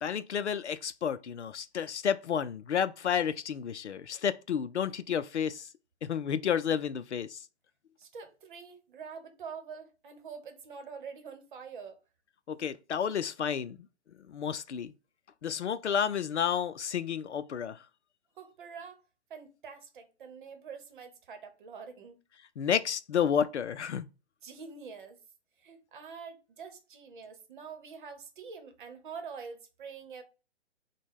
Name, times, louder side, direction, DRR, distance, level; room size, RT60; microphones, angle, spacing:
voice 1, 0.0-5.7 6.1-7.4 12.5-13.8 14.3-14.9 15.4-17.8 22.6-24.1, left 8 dB, 80° left, 0.5 m, -31 dB
voice 2, 8.0-12.0 18.4-19.0 19.3-22.2 24.4-25.2 25.6-30.2, right 5 dB, 45° right, 1.0 m, -45 dB
6.0 x 2.3 x 3.5 m
figure-of-eight pair, 135°, 34 cm